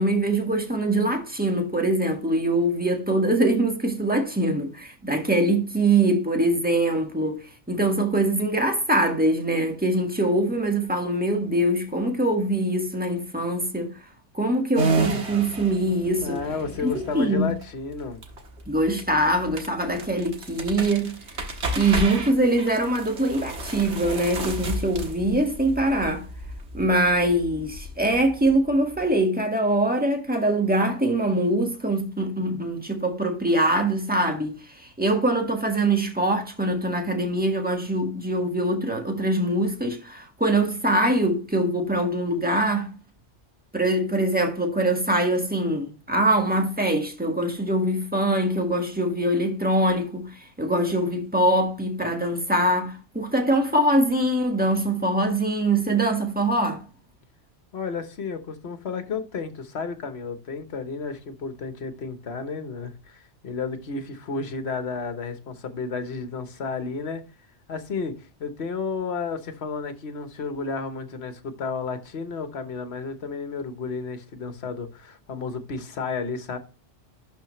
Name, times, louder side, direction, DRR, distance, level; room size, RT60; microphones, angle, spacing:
voice 1, 0.0-7.4 7.7-13.9 14.3-16.4 16.8-17.5 18.7-21.1 21.7-26.2 26.7-42.9 43.7-56.8, right 1 dB, 10° right, 1.4 m, -23 dB
sound 1, 14.8-29.0, right 2 dB, 70° right, 1.7 m, -32 dB
voice 2, 16.2-18.2 57.7-67.2 67.7-76.6, left 4 dB, 65° left, 1.3 m, -32 dB
11.5 x 4.2 x 3.1 m
omnidirectional pair, 1.2 m